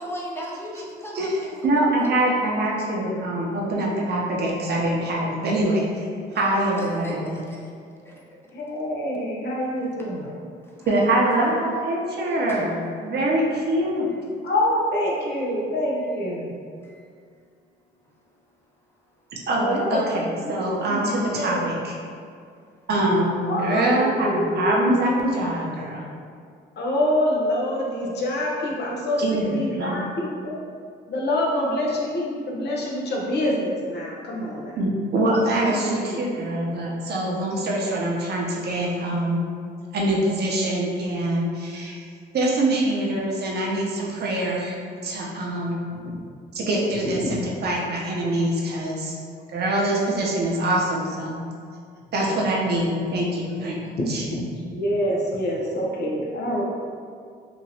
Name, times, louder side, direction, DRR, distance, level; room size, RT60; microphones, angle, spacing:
voice 1, 0.0-2.7 6.3-7.7 8.0-8.2 10.6-10.9 11.2-11.3 12.3-12.8 13.0-13.1 16.8-17.1, equal, 10° left, -3 dB, 0.5 m, -37 dB
voice 2, 1.6-6.1 6.3-7.4 10.9-14.1 19.5-22.0 22.9-26.1 29.2-29.4 29.8-30.0 34.8-39.4 39.9-42.0 42.3-44.8 45.0-45.8 46.5-49.2 49.5-51.4 52.1-54.2, right 1 dB, 55° right, -3 dB, 0.7 m, -24 dB
voice 3, 8.5-10.3 14.4-16.5 19.6-21.6 23.5-24.9 26.8-30.6 31.1-34.8 35.7-36.2 54.0-54.1 54.4-56.6, left 1 dB, 60° left, -3 dB, 0.7 m, -26 dB
3.0 x 2.5 x 2.7 m, 2.2 s
cardioid pair, 90°, 20 cm